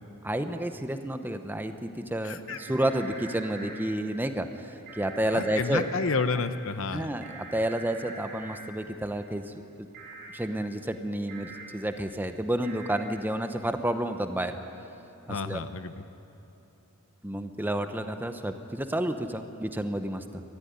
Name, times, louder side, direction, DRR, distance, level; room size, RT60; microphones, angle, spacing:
voice 1, 0.2-5.9 6.9-9.6 10.3-14.6 15.3-15.6 17.2-20.4, right 1 dB, 10° right, 8 dB, 0.8 m, -30 dB
voice 2, 2.2-2.6 5.3-7.1 15.3-16.0, left 4 dB, 60° left, 11 dB, 0.8 m, -30 dB
sound 1, 2.5-3.8 4.9-6.2 7.2-8.6 9.9-10.3 11.3-11.6 12.6-13.0, right 3 dB, 50° right, 3.6 m, -43 dB
22.0 x 14.0 x 9.6 m, 3.0 s
head